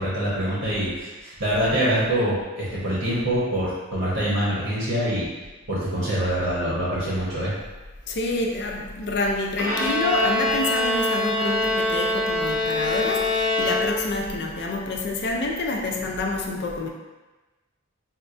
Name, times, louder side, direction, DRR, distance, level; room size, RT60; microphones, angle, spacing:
voice 1, 0.0-5.3 5.7-7.5, right 1 dB, 65° right, -9 dB, 0.9 m, -25 dB
voice 2, 8.1-16.9, left 2 dB, 55° left, 1 dB, 0.4 m, -27 dB
Bowed string instrument, 9.6-14.3, left 1 dB, 5° right, 0.9 m, -24 dB
4.3 x 2.1 x 2.5 m, 1.2 s
head